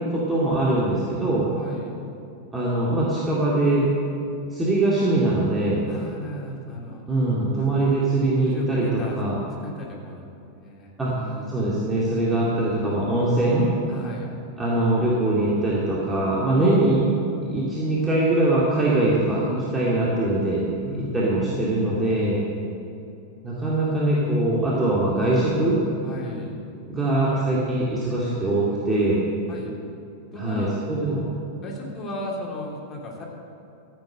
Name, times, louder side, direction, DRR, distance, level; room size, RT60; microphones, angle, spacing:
voice 1, 0.0-1.5 2.5-3.9 4.5-5.8 7.1-9.4 11.0-11.1 11.5-13.7 14.6-17.0 17.5-20.6 21.1-22.4 23.4-25.8 26.9-29.2 30.4-31.3, right 2 dB, 10° right, -7 dB, 2.4 m, -22 dB
voice 2, 1.6-2.0 5.9-7.1 7.6-7.7 8.5-9.2 9.5-10.3 10.6-11.6 13.9-14.3 20.8-22.4 26.0-26.6 27.1-27.5 29.5-29.7 30.3-30.7 31.6-33.2, left 1 dB, 25° left, -2 dB, 3.0 m, -36 dB
14.5 x 8.6 x 6.5 m, 2.8 s
figure-of-eight pair, 90°, 0 cm